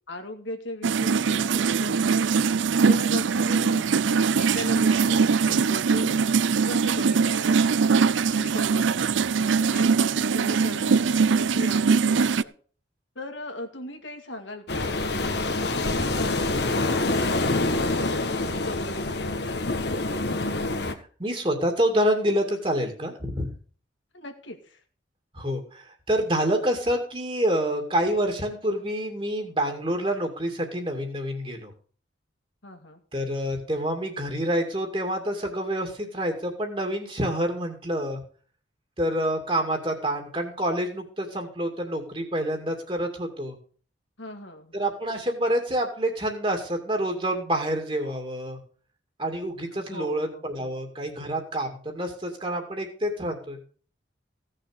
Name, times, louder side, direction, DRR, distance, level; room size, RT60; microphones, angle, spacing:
voice 1, 0.1-2.4 2.9-6.2 6.7-7.8 8.3-12.5 13.2-17.8 18.3-19.9 24.1-24.8 32.6-33.0 44.2-44.8 49.7-50.7, left 1 dB, 80° left, 5 dB, 2.3 m, -39 dB
sound 1, 0.8-12.4, right 5 dB, 80° right, 0.5 m, -22 dB
sound 2, 14.7-20.9, left 2 dB, 60° left, 1.5 m, -26 dB
voice 2, 21.2-23.5 25.3-31.7 33.1-38.2 39.0-43.6 44.7-48.6 49.2-53.6, right 1 dB, 30° right, 4 dB, 2.4 m, -27 dB
16.5 x 6.6 x 6.6 m, 0.41 s
head